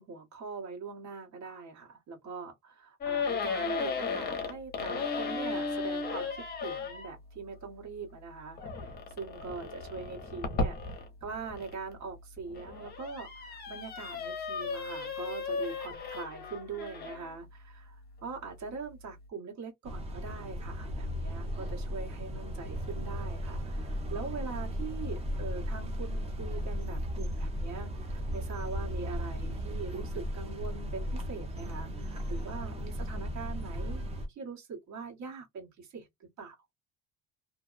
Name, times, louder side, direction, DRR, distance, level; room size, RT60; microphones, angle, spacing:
voice 1, 0.0-34.0 34.3-36.5, right 5 dB, 55° right, 1.5 m, -42 dB
sound 1, 3.0-7.1 8.6-11.7 12.4-17.3, left 4 dB, 30° left, 0.8 m, -35 dB
sound 2, 19.8-34.3, equal, 20° right, 0.6 m, -36 dB
2.6 x 2.1 x 2.4 m
cardioid pair, 140°, 33 cm